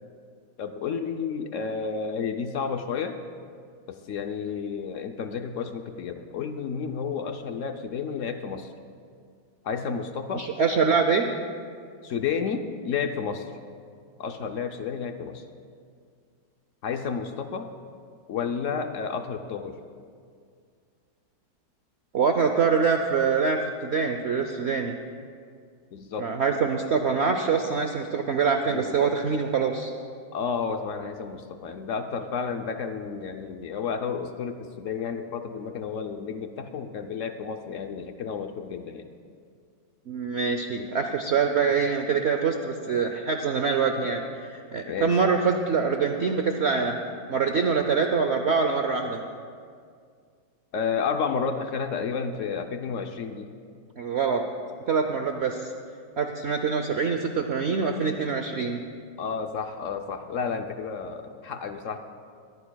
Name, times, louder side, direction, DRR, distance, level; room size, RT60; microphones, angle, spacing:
voice 1, 0.6-3.2 3.9-8.7 9.6-10.5 12.0-13.5 14.2-15.4 16.8-17.7 18.3-19.8 25.9-26.3 28.1-28.2 28.7-29.1 30.3-39.1 44.9-45.1 50.7-53.5 59.2-62.0, left 6 dB, 65° left, 6 dB, 0.8 m, -31 dB
voice 2, 10.3-11.3 22.1-25.0 26.2-29.9 40.1-44.2 44.5-47.0 47.3-49.2 54.0-54.4 54.9-55.7 56.2-58.8, right 5 dB, 70° right, 5 dB, 0.6 m, -24 dB
22.0 x 14.5 x 2.3 m, 2.1 s
omnidirectional pair, 1.9 m